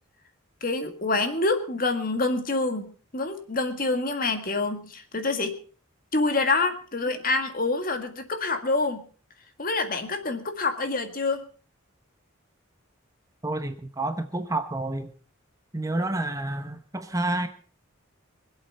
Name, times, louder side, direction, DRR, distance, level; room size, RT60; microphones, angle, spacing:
voice 1, 0.6-5.6 6.1-9.1 9.6-11.5, left 3 dB, 40° left, 7 dB, 1.9 m, -26 dB
voice 2, 13.4-15.1 15.7-17.5, right 2 dB, 15° right, 7 dB, 1.0 m, -29 dB
24.5 x 8.3 x 5.6 m, 0.42 s
head